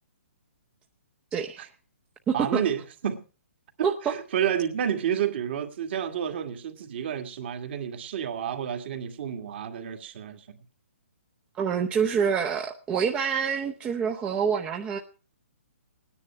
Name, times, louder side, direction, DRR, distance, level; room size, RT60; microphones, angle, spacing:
voice 1, 1.3-1.7 2.3-2.6 3.8-3.9 11.6-15.0, right 7 dB, 15° right, 3 dB, 0.7 m, -26 dB
voice 2, 2.3-3.2 3.8-10.6, right 9 dB, 50° right, 5 dB, 1.9 m, -30 dB
18.0 x 9.9 x 4.4 m, 0.35 s
hypercardioid pair, 145°, 7 cm